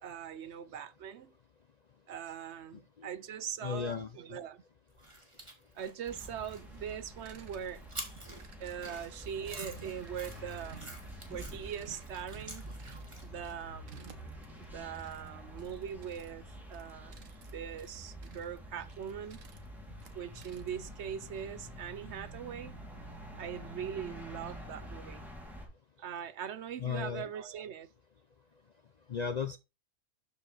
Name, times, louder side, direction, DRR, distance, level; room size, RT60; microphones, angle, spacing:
voice 1, 0.0-1.3 2.1-4.6 5.7-7.8 8.6-11.0 11.3-12.7 13.2-14.1 14.6-17.3 17.5-19.4 20.1-22.8 23.4-25.3 26.0-27.9, right 8 dB, 65° right, 0.9 m, -41 dB
voice 2, 3.6-4.1 26.8-27.3 29.1-29.6, left 6 dB, 50° left, 0.5 m, -34 dB
sound 1, 5.0-13.5, right 1 dB, 20° right, 2.2 m, -49 dB
sound 2, 6.1-25.7, equal, ahead, 2.5 m, -48 dB
sound 3, 6.6-20.9, right 7 dB, 85° right, 1.5 m, -57 dB
12.0 x 4.8 x 4.1 m
omnidirectional pair, 1.3 m